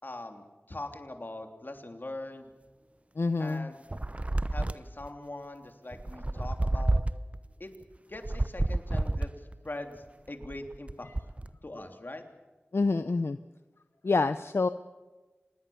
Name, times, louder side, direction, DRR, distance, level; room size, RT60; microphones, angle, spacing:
voice 1, 0.0-2.5 3.4-3.8 4.5-7.0 7.6-7.7 8.1-11.1 11.6-12.2, left 2 dB, 50° left, 5 dB, 3.2 m, -42 dB
voice 2, 3.2-3.7 12.7-13.4 14.0-14.7, left 3 dB, 75° left, 11 dB, 0.7 m, -27 dB
sound 1, 3.9-5.1 5.9-7.4 8.1-9.6 10.3-11.5, right 2 dB, 30° right, 0.8 m, -29 dB
26.0 x 20.5 x 7.1 m, 1.2 s
wide cardioid pair, 45°, 4 cm